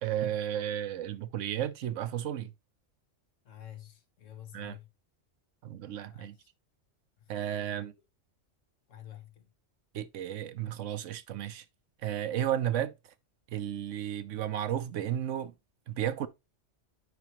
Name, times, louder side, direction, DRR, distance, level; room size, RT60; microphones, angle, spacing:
voice 1, 0.0-2.5 4.5-4.8 5.6-6.4 7.3-7.9 9.9-11.6 12.0-12.9 13.5-15.5 15.9-16.3, right 11 dB, 85° right, 1.0 m, -33 dB
voice 2, 3.4-4.9 6.1-6.5 7.2-7.3 7.6-7.8 8.9-9.5, left 11 dB, 85° left, 1.5 m, -49 dB
9.7 x 4.8 x 3.0 m
omnidirectional pair, 1.3 m